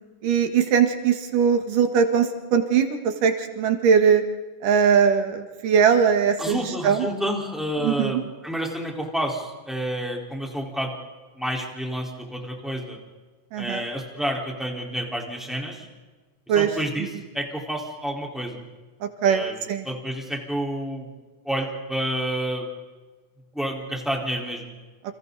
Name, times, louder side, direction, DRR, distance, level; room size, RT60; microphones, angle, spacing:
voice 1, 0.2-4.2 4.6-7.1 7.8-8.2 13.5-13.8 16.5-16.7 17.0-17.1 19.0-19.4 19.7-19.9, right 7 dB, 80° right, 6 dB, 3.4 m, -20 dB
voice 2, 6.4-10.9 11.4-13.0 13.6-15.9 16.5-17.1 17.3-18.6 19.2-21.1 21.4-22.7 23.5-24.7, equal, ahead, -1 dB, 4.1 m, -29 dB
30.0 x 27.5 x 4.1 m, 1.3 s
omnidirectional pair, 3.7 m